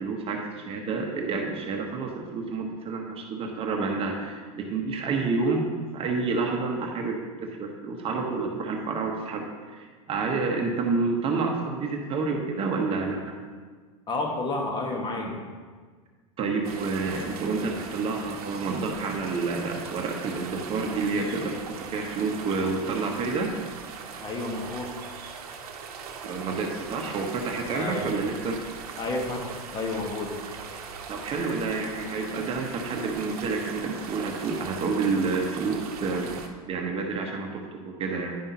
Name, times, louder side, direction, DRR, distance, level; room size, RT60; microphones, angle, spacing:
voice 1, 0.0-5.6 5.9-13.4 16.4-21.6 21.9-23.5 26.2-28.6 31.1-36.4 36.7-38.4, right 4 dB, 30° right, 2 dB, 1.0 m, -29 dB
voice 2, 14.1-15.4 24.2-25.0 27.7-28.1 29.0-30.4, left 2 dB, 25° left, 2 dB, 1.3 m, -31 dB
sound 1, 16.6-36.5, right 5 dB, 75° right, 0.9 m, -40 dB
10.5 x 5.4 x 2.8 m, 1.5 s
hypercardioid pair, 115°, 19 cm